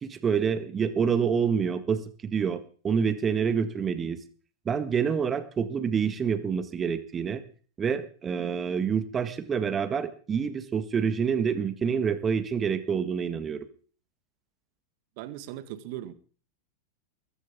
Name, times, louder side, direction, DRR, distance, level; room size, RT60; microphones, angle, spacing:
voice 1, 0.0-4.2 4.7-7.4 7.8-13.7, right 6 dB, 20° right, 11 dB, 1.8 m, -27 dB
voice 2, 15.2-16.1, right 13 dB, 45° right, 13 dB, 1.8 m, -38 dB
21.0 x 16.0 x 3.7 m, 0.41 s
figure-of-eight pair, 90°, 0 cm